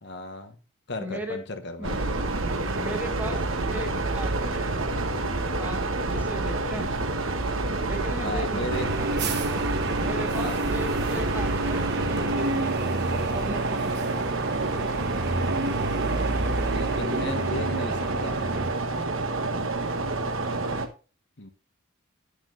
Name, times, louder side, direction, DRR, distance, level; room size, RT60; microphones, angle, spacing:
voice 1, 0.0-0.6 0.9-2.0 8.2-8.9 10.3-10.6 16.6-18.4 21.4-21.5, left 2 dB, 55° left, 6 dB, 1.3 m, -35 dB
voice 2, 1.0-1.4 1.8-2.0 2.3-3.4 3.7-4.7 5.6-6.9 7.8-9.1 10.0-14.0 18.9-19.2, right 1 dB, 10° right, 4 dB, 1.9 m, -37 dB
sound 1, 1.8-20.9, right 2 dB, 75° right, 1.4 m, -28 dB
sound 2, 8.7-18.7, right 2 dB, 55° right, 1.2 m, -30 dB
9.9 x 9.8 x 2.7 m, 0.33 s
head